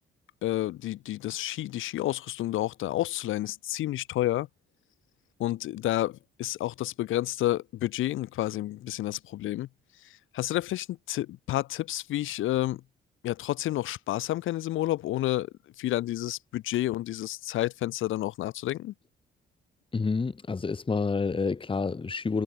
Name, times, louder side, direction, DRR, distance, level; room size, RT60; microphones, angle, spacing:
voice 1, 0.4-4.5 5.4-9.7 10.0-12.8 13.2-18.9, left 15 dB, 85° left, 2.1 m, -30 dB
voice 2, 19.9-22.4, left 4 dB, 25° left, 1.8 m, -28 dB
cardioid pair, 90°, 20 cm